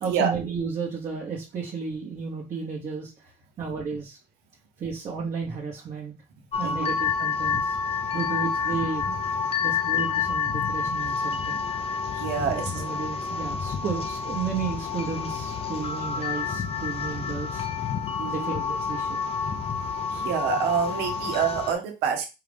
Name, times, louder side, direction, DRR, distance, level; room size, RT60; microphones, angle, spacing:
voice 1, 0.0-4.2 4.8-6.2 6.6-7.8 8.1-9.2 9.6-11.6 12.4-17.7 18.3-19.2, right 5 dB, 45° right, -2 dB, 1.1 m, -33 dB
sound 1, 6.5-21.7, left 6 dB, 35° left, 0.6 m, -29 dB
voice 2, 6.6-6.9 12.1-12.8 18.2-18.5 20.1-22.3, right 7 dB, 90° right, 4 dB, 1.1 m, -27 dB
4.7 x 2.5 x 3.4 m, 0.28 s
cardioid pair, 110°, 17 cm